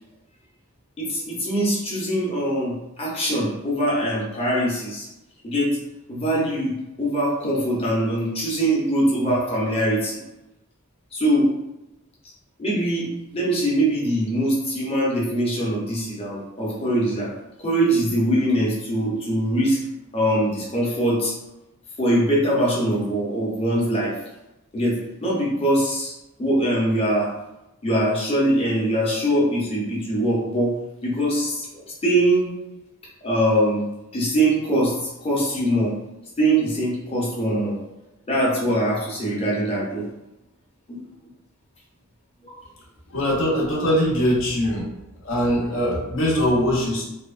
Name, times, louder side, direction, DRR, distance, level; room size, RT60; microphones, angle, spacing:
voice 1, 1.0-5.1 5.4-5.8 6.1-10.2 11.1-11.5 12.6-17.3 17.6-19.8 20.1-21.3 22.0-24.1 24.7-26.1 26.4-27.3 27.8-30.8 31.0-32.5 33.2-33.8 34.1-35.9 36.4-37.8 38.3-40.0 40.9-41.0 42.4-42.6, right 1 dB, 25° left, -5 dB, 0.7 m, -22 dB
voice 2, 43.1-44.9 45.2-47.0, equal, 65° left, -4 dB, 0.7 m, -21 dB
2.8 x 2.1 x 2.4 m, 0.93 s
head